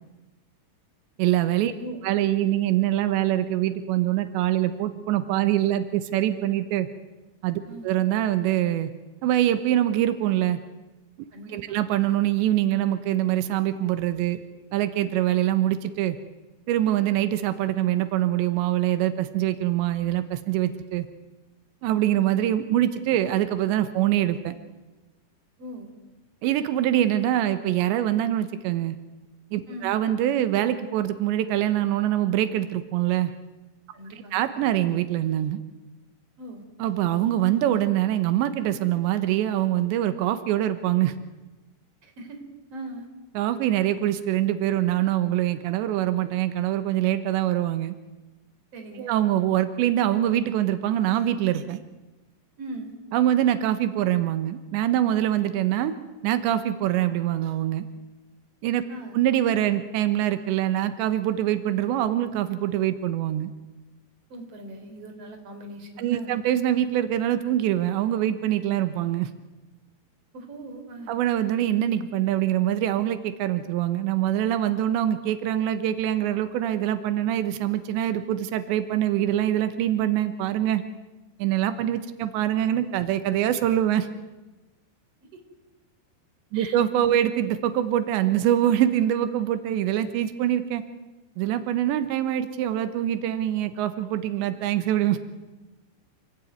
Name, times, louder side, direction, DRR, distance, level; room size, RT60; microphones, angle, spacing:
voice 1, 1.2-1.7 2.0-6.9 7.4-8.9 9.2-10.6 11.5-14.4 14.7-16.2 16.7-21.1 21.8-24.6 26.4-29.0 29.5-33.3 34.3-35.6 36.8-41.1 43.4-48.0 49.0-51.8 53.1-56.0 56.2-57.9 58.6-58.8 59.1-63.5 66.0-69.3 71.1-80.8 81.4-84.1 86.5-90.8 91.4-95.2, right 12 dB, 90° right, 10 dB, 3.4 m, -24 dB
voice 2, 11.3-11.8 25.6-25.9 29.7-29.9 33.9-34.4 36.4-36.7 42.0-42.4 42.7-43.1 48.7-49.2 52.6-53.0 58.9-59.2 64.3-66.4 70.3-71.1 85.2-85.4 86.5-86.8, right 1 dB, 35° right, 5 dB, 4.7 m, -40 dB
27.5 x 20.5 x 9.5 m, 1.1 s
omnidirectional pair, 4.9 m